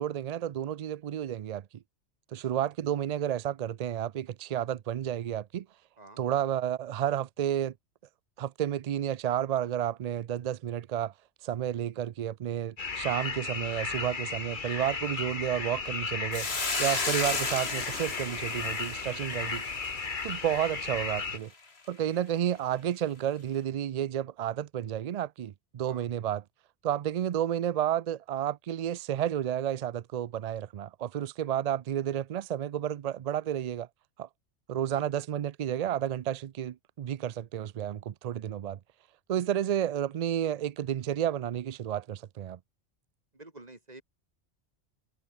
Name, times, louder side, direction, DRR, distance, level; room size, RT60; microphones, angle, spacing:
voice 1, 0.0-1.7 2.3-5.7 6.2-7.7 8.4-11.1 11.4-19.6 20.2-21.5 21.9-26.4 26.8-33.9 34.2-34.3 34.7-38.8 39.3-42.6, right 10 dB, 65° right, 0.4 m, -31 dB
sound 1, 12.8-21.4, left 4 dB, 45° left, 1.6 m, -35 dB
Hiss, 16.3-20.8, left 4 dB, 65° left, 2.5 m, -34 dB
voice 2, 43.3-44.0, right 2 dB, 35° right, 3.2 m, -49 dB
omnidirectional pair, 1.2 m